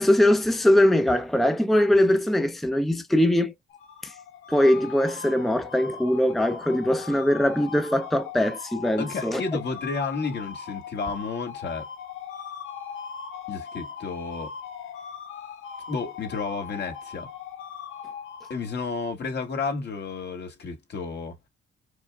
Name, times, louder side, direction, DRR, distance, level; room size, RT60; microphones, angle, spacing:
voice 1, 0.0-3.5 4.0-4.1 4.5-9.4, left 1 dB, ahead, 0.6 m, -21 dB
sound 1, 3.7-19.0, left 7 dB, 80° left, 1.0 m, -40 dB
voice 2, 9.0-11.9 13.5-14.5 15.9-17.3 18.5-21.4, left 4 dB, 60° left, 2.0 m, -31 dB
4.8 x 3.6 x 2.3 m
cardioid pair, 90°, 20 cm